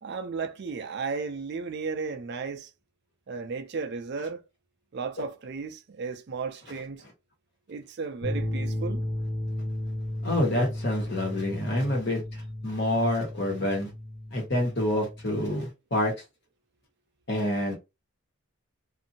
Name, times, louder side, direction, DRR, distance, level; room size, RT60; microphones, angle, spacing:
voice 1, 0.0-2.7 3.3-4.4 4.9-7.0 7.7-9.1, right 5 dB, 50° right, 0.4 m, -34 dB
sound 1, 8.2-15.5, left 1 dB, 35° left, 1.0 m, -34 dB
voice 2, 10.2-13.9 14.3-16.1 17.3-17.8, left 1 dB, 50° left, 1.3 m, -27 dB
2.6 x 2.6 x 2.7 m
head